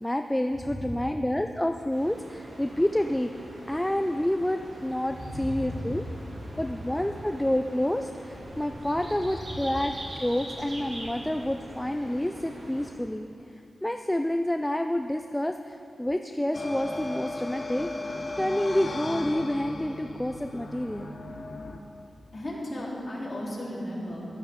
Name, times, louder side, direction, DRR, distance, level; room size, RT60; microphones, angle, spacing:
voice 1, 0.0-3.3 3.7-6.0 6.6-9.9 10.2-13.3 13.8-17.9 18.4-21.2, left 1 dB, 10° left, 6 dB, 0.3 m, -28 dB
voice 2, 0.5-1.1 5.1-5.9 6.3-7.0 9.2-9.6 22.3-24.3, left 1 dB, 30° left, -7 dB, 3.4 m, -36 dB
sound 1, 1.9-12.9, right 1 dB, 55° right, 2.5 m, -43 dB
sound 2, 16.5-21.8, left 2 dB, 50° left, 1.0 m, -36 dB
15.5 x 12.5 x 3.7 m, 2.7 s
wide cardioid pair, 120°, 0 cm